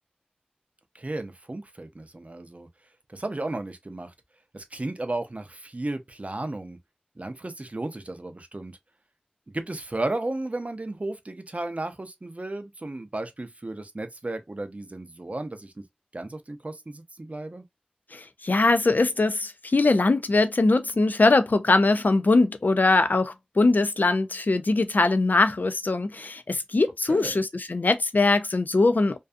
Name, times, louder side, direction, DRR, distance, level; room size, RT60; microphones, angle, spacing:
voice 1, 0.9-2.7 3.1-4.1 4.5-6.8 7.2-8.8 9.5-15.8 16.1-17.6 27.1-27.4, right 2 dB, 50° right, 0.5 m, -34 dB
voice 2, 18.1-29.2, left 3 dB, 80° left, 0.4 m, -22 dB
2.5 x 2.3 x 2.4 m
wide cardioid pair, 50°, 3 cm